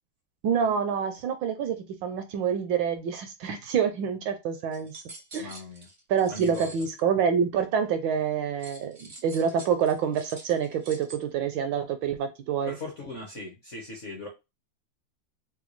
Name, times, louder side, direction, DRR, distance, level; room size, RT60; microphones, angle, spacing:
voice 1, 0.4-5.0 5.3-5.5 6.1-12.7, right 7 dB, 75° right, 8 dB, 1.2 m, -27 dB
sound 1, 4.7-7.0 8.6-11.1, right 2 dB, 55° right, 0.5 m, -47 dB
voice 2, 5.4-5.9 6.3-6.7 12.7-14.3, left 2 dB, 55° left, 0 dB, 0.8 m, -39 dB
4.0 x 2.3 x 3.0 m, 0.24 s
omnidirectional pair, 2.3 m